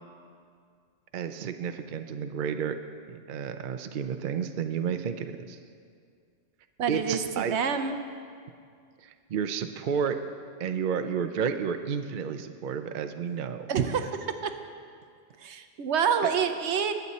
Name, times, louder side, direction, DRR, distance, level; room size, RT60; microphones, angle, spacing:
voice 1, 1.1-2.8 3.1-5.6 6.9-7.5 9.0-10.2 10.6-13.7 16.2-16.3, right 7 dB, 55° right, 8 dB, 0.6 m, -31 dB
voice 2, 6.8-7.9 13.7-14.1 14.4-14.5 15.4-16.9, right 7 dB, 70° right, 8 dB, 1.0 m, -27 dB
21.0 x 8.1 x 4.2 m, 2.2 s
omnidirectional pair, 1.2 m